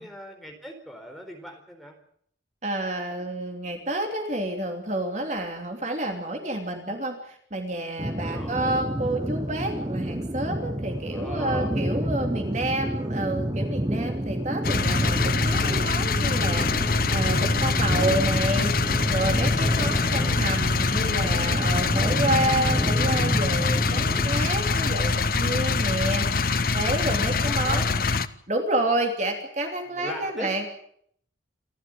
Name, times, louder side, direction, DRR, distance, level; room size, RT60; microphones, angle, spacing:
voice 1, 0.0-2.0 8.3-8.5 11.1-12.9 20.2-20.4 21.0-21.4 27.4-28.0 29.9-30.5, equal, ahead, 2 dB, 4.5 m, -40 dB
voice 2, 2.6-18.7 19.1-26.3 26.7-28.1 28.5-30.7, right 1 dB, 40° right, 3 dB, 3.0 m, -29 dB
sound 1, 8.0-24.5, right 1 dB, 20° right, 0.9 m, -29 dB
sound 2, 14.6-28.3, left 4 dB, 50° left, 0.9 m, -24 dB
27.5 x 12.5 x 9.4 m, 0.67 s
head